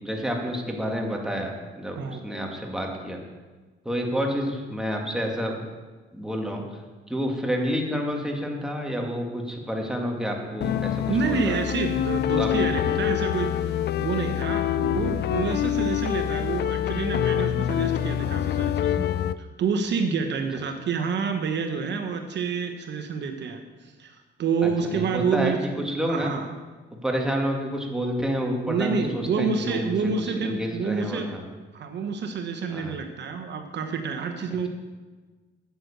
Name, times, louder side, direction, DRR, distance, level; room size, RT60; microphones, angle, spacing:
voice 1, 0.0-3.2 3.9-5.6 6.1-6.6 7.1-11.6 12.4-12.5 24.6-26.3 27.0-31.4 32.7-33.0, equal, 5° right, 0 dB, 2.1 m, -29 dB
sound 1, 10.6-19.4, left 11 dB, 55° left, 0.4 m, -26 dB
voice 2, 11.1-19.1 19.4-26.5 28.6-31.3 31.7-34.7, right 5 dB, 60° right, 6 dB, 1.1 m, -28 dB
9.5 x 8.0 x 6.7 m, 1.3 s
cardioid pair, 90°, 20 cm